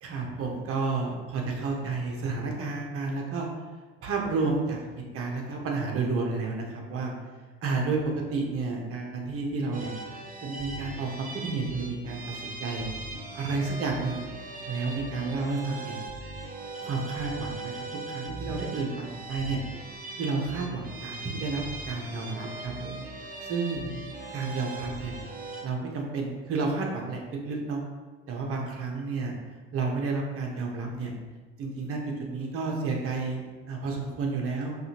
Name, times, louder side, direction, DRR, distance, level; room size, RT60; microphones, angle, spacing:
voice 1, 0.0-3.5 4.0-4.8 5.1-7.1 7.6-9.9 10.4-12.9 13.3-14.2 14.7-16.0 16.8-19.6 20.2-23.0 23.4-23.9 24.3-25.1 25.6-27.8 28.3-29.3 29.7-31.1 31.6-34.8, right 3 dB, 45° right, 0 dB, 0.9 m, -31 dB
sound 1, 9.7-25.6, right 2 dB, 25° right, 0.7 m, -39 dB
5.3 x 2.5 x 2.9 m, 1.4 s
figure-of-eight pair, 60°, 33 cm